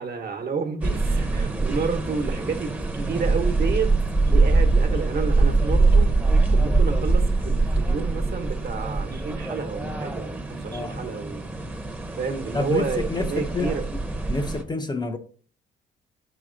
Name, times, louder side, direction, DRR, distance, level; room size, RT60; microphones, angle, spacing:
voice 1, 0.0-3.9 4.2-6.2 6.5-11.5 12.2-13.8, right 5 dB, 50° right, 1.2 m, -30 dB
sound 1, 0.8-14.6, right 3 dB, 10° right, 0.9 m, -23 dB
voice 2, 10.7-11.1 12.5-13.7 14.3-15.2, left 3 dB, 20° left, 0.7 m, -28 dB
5.4 x 4.9 x 3.9 m
cardioid pair, 90°, 20 cm